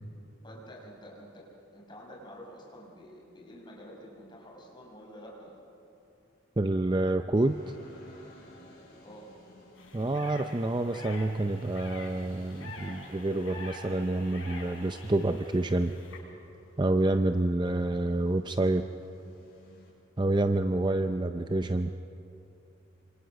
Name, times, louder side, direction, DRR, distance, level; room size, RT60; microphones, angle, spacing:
voice 1, 0.4-1.5 1.7-5.6 9.0-9.3, equal, 20° left, -3 dB, 5.6 m, -48 dB
voice 2, 6.6-7.6 9.9-15.9 16.8-18.9 20.2-21.9, right 2 dB, 20° right, 8 dB, 0.5 m, -28 dB
sound 1, 7.3-19.9, left 1 dB, 50° left, 6.6 m, -54 dB
sound 2, 9.7-16.2, left 3 dB, 75° left, 5.8 m, -47 dB
27.0 x 25.5 x 6.4 m, 2.8 s
head